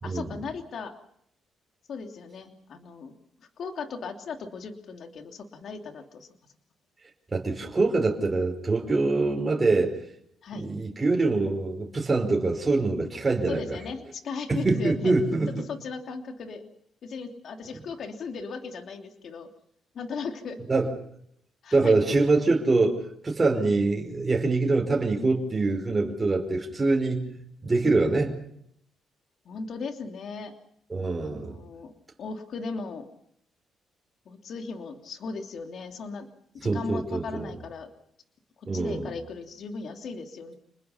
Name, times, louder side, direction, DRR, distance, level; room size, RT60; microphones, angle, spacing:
voice 1, 0.0-0.9 1.9-3.1 3.4-6.3 10.4-10.7 13.5-15.1 15.7-16.7 17.0-19.5 19.9-20.6 21.6-22.0 29.4-30.5 31.2-31.9 32.2-33.1 34.2-36.3 36.5-37.9 38.7-40.5, left 4 dB, 60° left, 5 dB, 3.0 m, -37 dB
voice 2, 7.3-9.9 10.6-13.8 14.5-15.6 20.7-20.9 21.7-28.3 30.9-31.6 36.6-37.5 38.7-39.1, right 3 dB, 25° right, 0 dB, 5.1 m, -24 dB
29.0 x 21.0 x 5.7 m, 0.71 s
cardioid pair, 90°, 0 cm